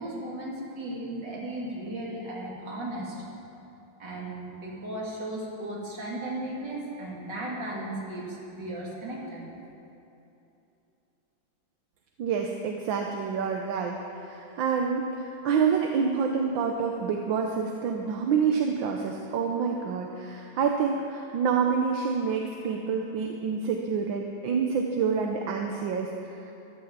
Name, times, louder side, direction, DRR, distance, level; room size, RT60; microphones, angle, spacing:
voice 1, 0.0-3.2 4.0-9.4, right 1 dB, 60° right, -4 dB, 3.5 m, -36 dB
voice 2, 12.2-26.5, right 6 dB, 75° right, 2 dB, 1.6 m, -27 dB
13.5 x 11.5 x 7.4 m, 2.9 s
omnidirectional pair, 2.2 m